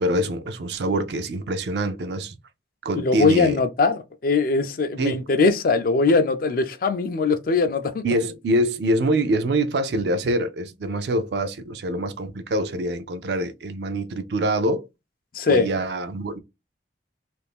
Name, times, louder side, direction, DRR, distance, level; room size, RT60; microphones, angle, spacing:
voice 1, 0.0-2.4 2.8-3.6 5.0-5.3 8.0-14.9 15.5-16.4, right 1 dB, 65° right, 0.4 m, -25 dB
voice 2, 2.9-8.0 15.3-15.7, left 4 dB, 50° left, 0.4 m, -21 dB
2.5 x 2.5 x 3.4 m
head